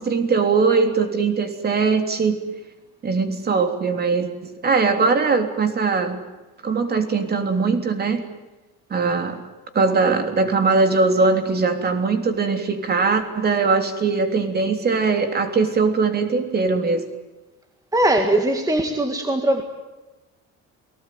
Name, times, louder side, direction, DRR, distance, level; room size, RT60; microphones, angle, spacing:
voice 1, 0.0-2.4 3.0-6.2 6.6-8.2 8.9-9.4 9.7-17.2, right 4 dB, 30° right, 7 dB, 3.3 m, -21 dB
voice 2, 17.9-19.6, right 1 dB, 10° right, 5 dB, 1.9 m, -20 dB
29.0 x 19.5 x 9.4 m, 1.1 s
cardioid pair, 155°, 30 cm